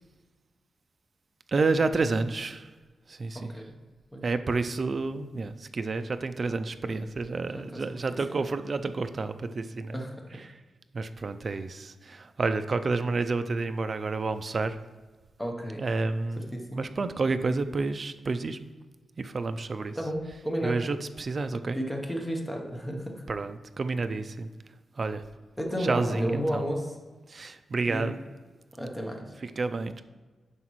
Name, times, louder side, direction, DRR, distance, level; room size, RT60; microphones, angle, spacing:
voice 1, 1.5-2.7 3.1-3.5 4.2-10.0 10.5-10.6 10.9-14.8 15.8-16.4 16.7-18.6 19.2-20.0 20.6-21.8 23.3-24.5 25.0-25.2 25.8-26.6 27.3-28.1 29.4-30.0, right 3 dB, 35° right, 9 dB, 0.3 m, -30 dB
voice 2, 3.3-3.7 4.1-4.2 7.5-7.9 9.9-10.3 15.4-15.8 16.5-16.9 20.0-20.8 21.7-23.2 25.6-27.0 27.9-28.1 28.8-29.2, equal, 5° left, 1 dB, 0.9 m, -32 dB
9.6 x 5.9 x 3.1 m, 1.3 s
wide cardioid pair, 155°, 0 cm